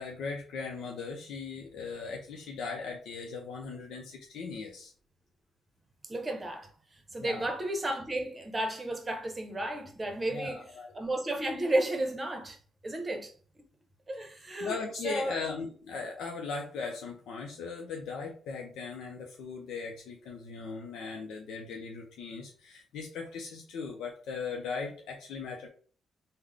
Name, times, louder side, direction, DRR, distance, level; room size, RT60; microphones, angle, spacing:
voice 1, 0.0-4.9 7.2-7.5 10.3-10.9 14.6-25.7, left 4 dB, 80° left, 0.6 m, -38 dB
voice 2, 6.1-6.7 7.1-12.6 12.8-13.3 14.1-14.8 15.0-15.4, right 1 dB, 20° right, 0.8 m, -33 dB
3.7 x 2.1 x 3.3 m
cardioid pair, 90°, 0 cm